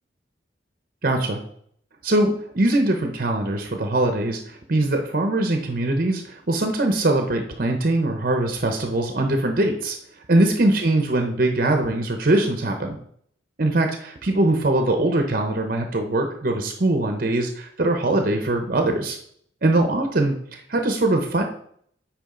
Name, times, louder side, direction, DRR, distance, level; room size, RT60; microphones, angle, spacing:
voice 1, 1.0-1.4 2.0-10.0 10.3-13.0 13.6-19.2 19.6-21.4, right 2 dB, 50° right, 4 dB, 0.8 m, -22 dB
8.7 x 4.9 x 3.8 m, 0.64 s
head